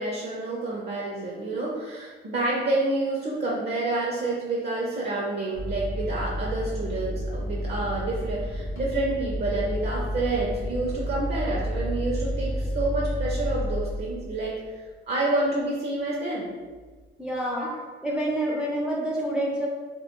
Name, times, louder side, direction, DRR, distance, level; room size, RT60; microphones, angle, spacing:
voice 1, 0.0-14.6 15.1-16.5 17.6-17.7, right 2 dB, 55° right, -4 dB, 0.5 m, -28 dB
sound 1, 5.5-14.7 16.7-17.1, equal, 85° left, 0.7 m, -31 dB
voice 2, 17.2-17.7 18.0-19.7, right 1 dB, 5° right, -3 dB, 0.4 m, -27 dB
2.2 x 2.1 x 2.9 m, 1.4 s
cardioid pair, 90°, 20 cm